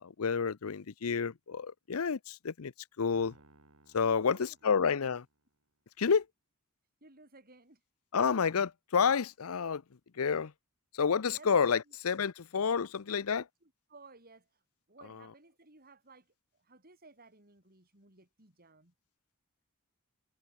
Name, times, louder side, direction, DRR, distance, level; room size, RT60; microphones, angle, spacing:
voice 1, 0.0-2.7 3.0-3.3 3.9-5.2 6.0-6.2 8.1-9.8 10.2-10.5 11.0-13.4, left 6 dB, 85° left, 0.6 m, -29 dB
Piano, 3.1-5.6, right 2 dB, 80° right, 5.1 m, -63 dB
voice 2, 4.0-5.1 7.0-7.8 11.3-12.0 13.1-14.5 14.9-16.3 16.6-18.9, right 3 dB, 45° right, 7.5 m, -58 dB
head